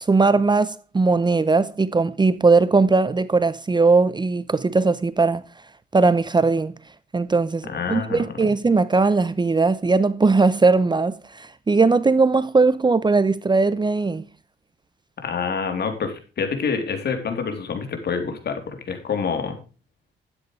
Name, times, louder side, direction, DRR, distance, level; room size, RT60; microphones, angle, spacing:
voice 1, 0.0-5.4 5.9-6.7 7.1-14.2, right 3 dB, 20° right, 0.7 m, -19 dB
voice 2, 7.7-8.5 15.2-19.6, left 5 dB, 55° left, 3.4 m, -27 dB
12.5 x 9.6 x 3.3 m
cardioid pair, 90°, 20 cm